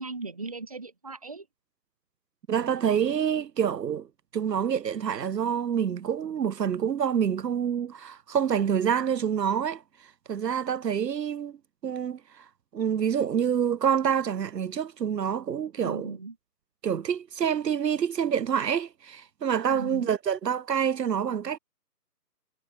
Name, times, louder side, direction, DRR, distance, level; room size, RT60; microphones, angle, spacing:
voice 1, 0.0-1.5 15.8-16.4 19.7-20.1, right 3 dB, 20° right, 1.0 m, -37 dB
voice 2, 2.5-4.1 4.3-9.8 10.3-11.6 11.8-12.4 12.7-16.1 16.8-21.6, right 8 dB, 80° right, 0.6 m, -27 dB
figure-of-eight pair, 155°, 49 cm